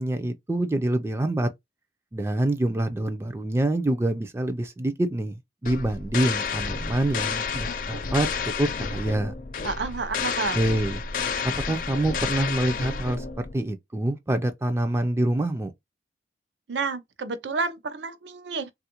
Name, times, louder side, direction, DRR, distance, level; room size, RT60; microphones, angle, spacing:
voice 1, 0.0-1.5 2.1-8.3 8.6-9.3 10.5-11.0 11.4-15.7, right 1 dB, 15° right, 0.3 m, -26 dB
sound 1, 5.6-13.5, left 5 dB, 50° left, 0.5 m, -30 dB
voice 2, 9.6-10.6 16.7-18.7, right 4 dB, 85° right, 0.5 m, -30 dB
3.3 x 2.4 x 2.8 m
head